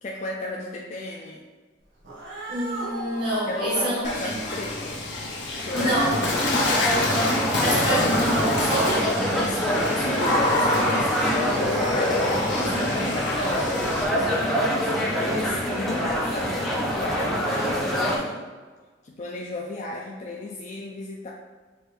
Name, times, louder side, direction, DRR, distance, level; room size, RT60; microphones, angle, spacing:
voice 1, 0.0-1.4 3.5-5.0 5.5-6.1 6.5-6.8 9.3-18.4 19.0-21.3, left 2 dB, 40° left, -2 dB, 0.4 m, -34 dB
Cat, 2.0-7.6, right 2 dB, 75° right, 1.3 m, -39 dB
voice 2, 2.5-4.3 5.7-6.2 6.9-9.1, right 1 dB, 45° right, -11 dB, 1.3 m, -27 dB
Water / Splash splatter, 4.0-14.0, left 2 dB, 65° left, 0.7 m, -27 dB
sound 1, 5.7-18.2, equal, ahead, 0.6 m, -25 dB
6.3 x 2.5 x 3.2 m, 1.4 s
head